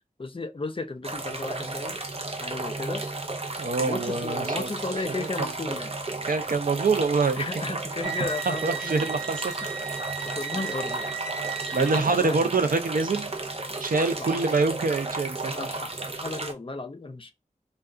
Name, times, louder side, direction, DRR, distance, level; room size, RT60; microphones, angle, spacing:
voice 1, 0.2-2.0 2.4-3.1 3.8-6.0 7.4-9.1 9.6-9.7 10.3-12.7 14.2-14.4 15.5-17.3, left 3 dB, 40° left, 0.5 m, -35 dB
sound 1, 1.0-16.5, right 2 dB, 45° right, 0.6 m, -33 dB
voice 2, 3.6-4.7 5.2-5.5 6.3-7.4 8.5-9.5 11.7-13.3 13.8-15.5, right 4 dB, 85° right, 0.5 m, -25 dB
sound 2, 8.0-12.5, right 6 dB, 5° right, 0.7 m, -36 dB
2.3 x 2.2 x 3.7 m
wide cardioid pair, 50°, 14 cm